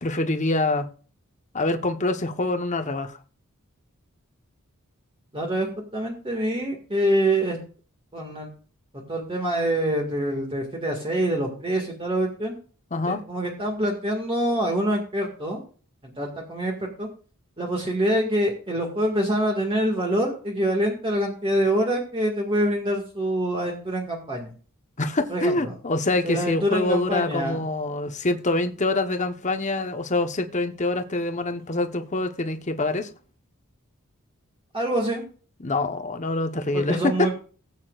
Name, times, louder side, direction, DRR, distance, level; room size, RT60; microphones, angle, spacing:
voice 1, 0.0-0.9 1.5-3.2 12.9-13.2 25.0-33.1 35.6-37.3, left 2 dB, 35° left, 1.0 m, -25 dB
voice 2, 5.3-5.7 5.9-7.6 8.1-8.5 8.9-12.5 13.1-15.6 16.0-17.1 17.6-24.5 25.3-25.7 26.2-27.6 31.6-31.7 34.7-35.2 36.7-37.3, right 1 dB, 25° right, 1.9 m, -25 dB
19.0 x 8.5 x 2.4 m
head